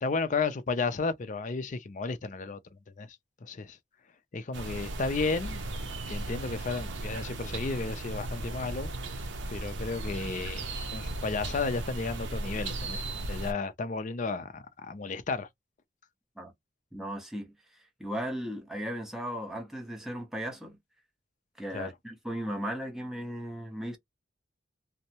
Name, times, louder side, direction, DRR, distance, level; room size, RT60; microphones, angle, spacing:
voice 1, 0.0-2.6 3.0-3.1 3.4-3.8 4.3-5.7 6.1-8.9 9.5-13.0 13.3-15.5 21.7-21.9, left 4 dB, 40° left, 0.4 m, -33 dB
sound 1, 4.5-13.5, right 2 dB, 65° right, 0.6 m, -36 dB
voice 2, 16.9-17.5 18.0-20.8 21.6-24.0, equal, ahead, 0.7 m, -36 dB
2.6 x 2.1 x 2.8 m
head